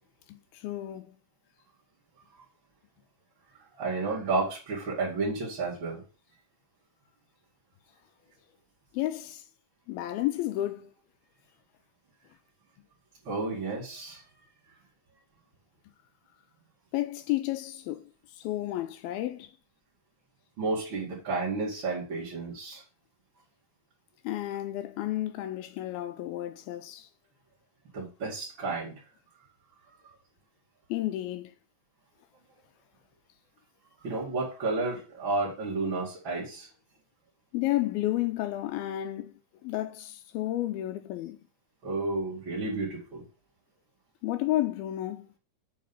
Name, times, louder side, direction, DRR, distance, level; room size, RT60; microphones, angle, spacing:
voice 1, 0.3-1.1 8.9-9.4 9.9-10.9 16.9-18.1 18.3-19.5 24.2-27.1 30.9-31.5 37.5-39.3 39.6-41.4 44.2-45.3, left 15 dB, 85° left, 2.4 m, -31 dB
voice 2, 3.8-6.0 13.2-14.2 20.6-22.8 27.9-28.9 30.0-30.1 34.0-36.7 41.8-43.2, right 3 dB, 35° right, 2.5 m, -31 dB
7.6 x 5.1 x 5.4 m
omnidirectional pair, 4.4 m